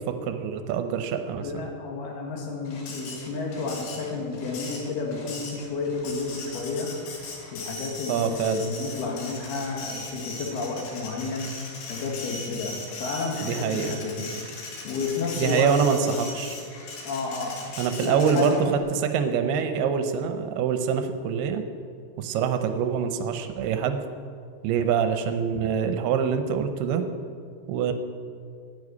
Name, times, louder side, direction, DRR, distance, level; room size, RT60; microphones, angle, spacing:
voice 1, 0.0-1.6 8.1-8.7 13.4-13.9 15.4-16.6 17.8-21.6 22.2-24.0 24.6-27.0 27.7-27.9, right 7 dB, 80° right, 8 dB, 2.7 m, -25 dB
voice 2, 1.4-6.9 7.5-11.5 11.9-14.3 14.8-16.0 17.1-17.6 18.0-18.7, left 4 dB, 70° left, 0 dB, 3.8 m, -31 dB
Printer, 2.7-18.8, left 3 dB, 85° left, 4.2 m, -39 dB
10.0 x 9.7 x 9.6 m, 2.3 s
omnidirectional pair, 4.7 m